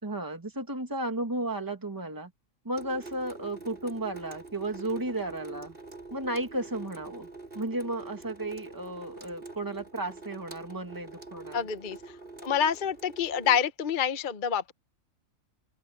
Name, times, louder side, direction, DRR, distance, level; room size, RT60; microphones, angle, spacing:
voice 1, 0.0-2.3 2.6-5.8 6.1-7.3 7.5-11.6, right 1 dB, 15° right, 2.2 m, -34 dB
Water tap faucet / Sink (filling or washing) / Drip, 2.8-13.6, right 3 dB, 40° right, 7.6 m, -45 dB
voice 2, 11.5-12.0 12.4-14.7, left 8 dB, 40° left, 1.0 m, -27 dB
open air
omnidirectional pair, 1.4 m